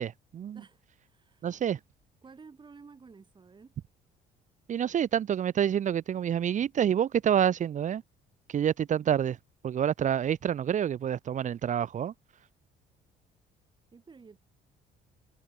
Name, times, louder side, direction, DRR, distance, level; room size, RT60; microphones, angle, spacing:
voice 1, 0.0-0.6 1.4-1.8 4.7-8.0 8.5-9.4 9.6-12.1, right 9 dB, 45° right, 1.4 m, -28 dB
voice 2, 0.5-1.6 2.2-3.7 13.9-14.4, right 5 dB, 25° right, 7.5 m, -52 dB
cardioid pair, 110°, 17 cm